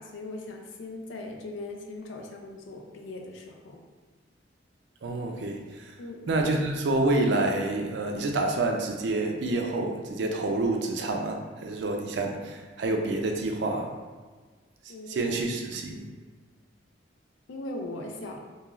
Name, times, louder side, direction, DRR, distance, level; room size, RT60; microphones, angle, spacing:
voice 1, 0.0-3.8 6.0-6.2 14.9-15.4 17.5-18.4, left 2 dB, 80° left, 2 dB, 0.4 m, -39 dB
voice 2, 5.0-5.9 6.3-14.0 15.1-16.0, right 2 dB, 65° right, 2 dB, 0.4 m, -28 dB
2.3 x 2.3 x 3.0 m, 1.4 s
head